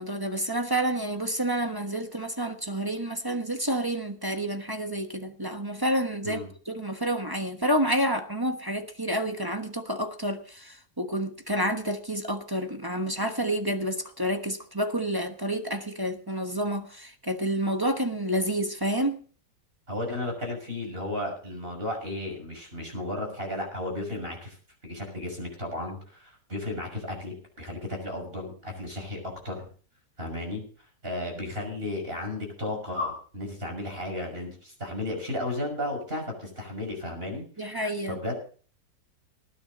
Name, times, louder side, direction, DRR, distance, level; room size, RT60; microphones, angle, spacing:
voice 1, 0.0-19.2 37.6-38.2, right 1 dB, 15° right, 1.0 m, -29 dB
voice 2, 19.9-24.6 24.8-29.7 30.2-30.6 31.0-37.8 38.1-38.4, left 1 dB, 35° right, 6.6 m, -34 dB
19.5 x 10.5 x 4.2 m
omnidirectional pair, 1.8 m